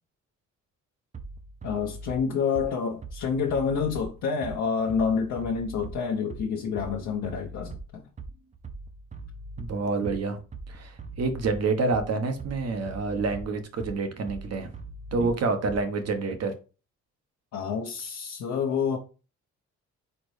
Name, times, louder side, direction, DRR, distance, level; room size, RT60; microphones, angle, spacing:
Bass drum, 1.1-16.1, right 3 dB, 25° right, 0.6 m, -41 dB
voice 1, 1.6-8.0 15.2-15.3 17.5-19.0, left 6 dB, 70° left, 0.8 m, -28 dB
voice 2, 9.6-10.4 10.7-14.7 15.1-16.5, right 3 dB, 55° right, 1.1 m, -28 dB
4.3 x 3.9 x 3.2 m
cardioid pair, 90°, 30 cm